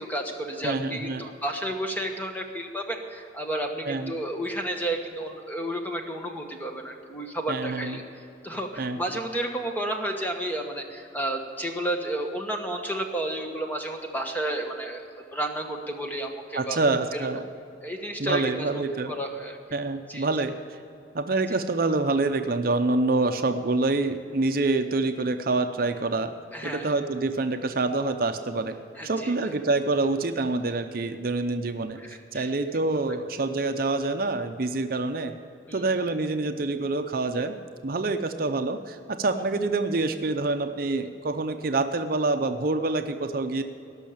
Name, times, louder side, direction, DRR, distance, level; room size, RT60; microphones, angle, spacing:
voice 1, 0.0-8.0 8.4-15.0 15.3-16.8 17.1-17.3 17.8-19.6 20.1-20.3 21.5-21.6 26.5-27.0 29.0-29.3 32.0-32.5 33.1-33.2 35.7-35.8, right 1 dB, 10° left, 3 dB, 1.2 m, -32 dB
voice 2, 0.6-1.3 3.9-4.1 7.5-8.0 8.8-9.0 16.5-17.4 18.2-19.1 19.7-20.5 21.1-26.3 26.6-28.8 29.0-35.3 35.7-37.5 37.8-43.6, right 3 dB, 50° right, 7 dB, 0.6 m, -26 dB
17.5 x 6.4 x 8.6 m, 2.6 s
head